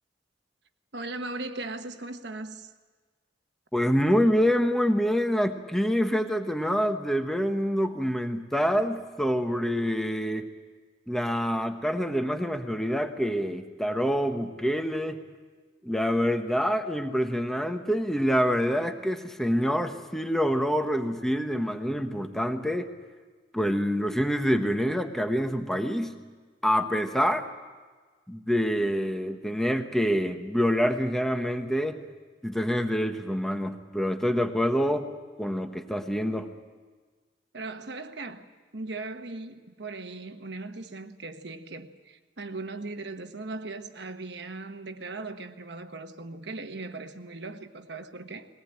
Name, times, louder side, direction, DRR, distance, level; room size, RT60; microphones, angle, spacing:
voice 1, 0.9-2.7 37.5-38.4 38.7-48.5, right 3 dB, 60° right, 1.2 m, -38 dB
voice 2, 3.7-10.5 11.1-15.2 15.8-22.9 23.5-26.1 26.6-27.4 28.3-32.0 32.4-35.1 35.4-36.5, equal, ahead, 1.1 m, -26 dB
21.0 x 18.0 x 8.9 m
head